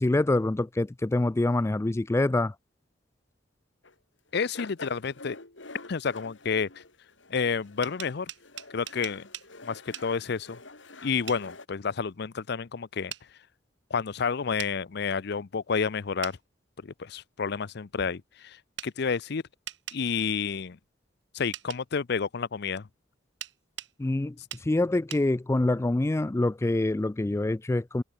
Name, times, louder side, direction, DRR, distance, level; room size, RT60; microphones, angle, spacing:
voice 1, 0.0-2.5 24.0-24.4 24.6-28.0, left 2 dB, 15° left, 0.3 m, -25 dB
sound 1, 3.8-4.0 4.3-11.7, left 3 dB, 90° left, 4.7 m, -47 dB
voice 2, 4.3-5.4 5.9-6.8 7.3-8.3 8.7-9.3 9.6-10.6 11.0-13.1 13.9-16.4 16.8-18.6 18.8-19.4 19.9-20.8 21.3-22.9, left 5 dB, 60° left, 0.6 m, -30 dB
sound 2, 7.6-9.5 9.9-10.1 11.3-11.4 13.1-13.2 14.6-14.7 16.2-16.4 18.8-18.9 19.7-20.0 21.5-21.8 23.4-23.9 24.5-24.7 25.1-25.2, right 12 dB, 70° right, 1.5 m, -40 dB
head